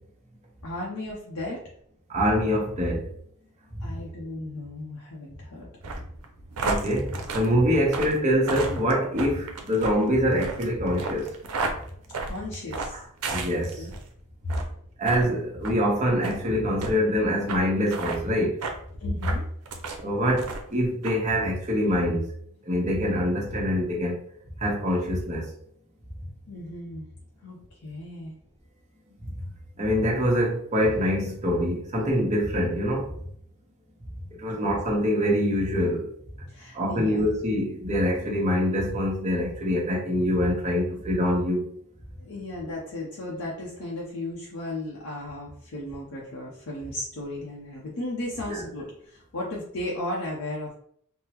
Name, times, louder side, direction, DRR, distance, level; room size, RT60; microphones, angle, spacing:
voice 1, 0.6-1.6 3.8-5.6 12.2-13.0 13.7-13.9 19.0-19.5 26.5-27.0 27.4-28.3 34.5-34.7 36.5-37.2 42.2-50.7, left 1 dB, 65° left, 0.6 m, -35 dB
voice 2, 2.1-3.1 6.6-11.3 13.3-13.8 15.0-18.6 20.0-22.2 22.6-24.2 24.6-25.5 29.2-29.3 29.8-33.1 34.4-36.1 36.7-41.7 48.5-48.6, equal, 30° right, 0.9 m, -25 dB
sound 1, 5.8-14.0 14.4-14.7 15.0-15.2 15.6-15.8 16.2-16.4 16.8-16.9 17.5-17.6 17.9-18.2 18.6-18.8 19.2-20.0 20.4-20.7 21.0-21.2, right 3 dB, 85° right, 0.6 m, -32 dB
3.5 x 2.0 x 2.9 m
head